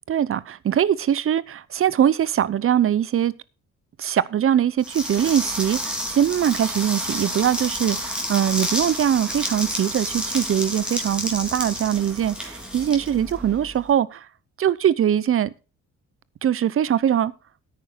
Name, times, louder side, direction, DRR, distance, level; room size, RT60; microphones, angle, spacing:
voice 1, 0.1-3.4 4.0-14.3 14.6-15.5 16.4-17.3, right 10 dB, 45° right, 0.7 m, -22 dB
sound 1, 4.8-13.8, equal, 5° right, 3.5 m, -30 dB
10.0 x 9.3 x 4.5 m
cardioid pair, 90°, 30 cm